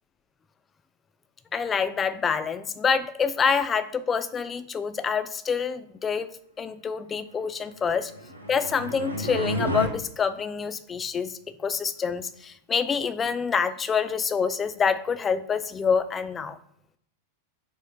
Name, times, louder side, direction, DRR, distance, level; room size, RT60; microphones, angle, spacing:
voice 1, 1.5-6.3 6.6-8.1 8.5-16.6, left 6 dB, 20° left, 13 dB, 0.3 m, -26 dB
sound 1, 7.9-9.9, equal, 85° right, 0.7 m, -31 dB
4.2 x 3.2 x 3.8 m, 0.70 s
figure-of-eight pair, 90°, 0 cm